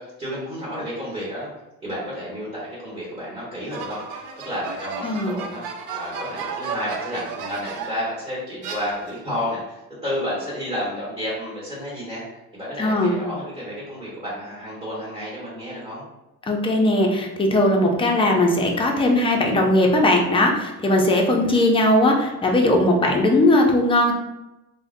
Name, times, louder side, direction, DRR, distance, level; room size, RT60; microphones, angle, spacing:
voice 1, 0.0-1.5 1.8-5.6 5.9-16.0 21.4-21.6, equal, 15° right, -8 dB, 1.1 m, -31 dB
sound 1, 3.7-8.1 8.6-9.4, right 5 dB, 90° right, 0.6 m, -34 dB
voice 2, 5.0-5.3 12.8-13.1 16.5-24.1, left 1 dB, 15° left, 1 dB, 0.4 m, -19 dB
3.6 x 2.1 x 2.5 m, 0.97 s
cardioid pair, 125°, 37 cm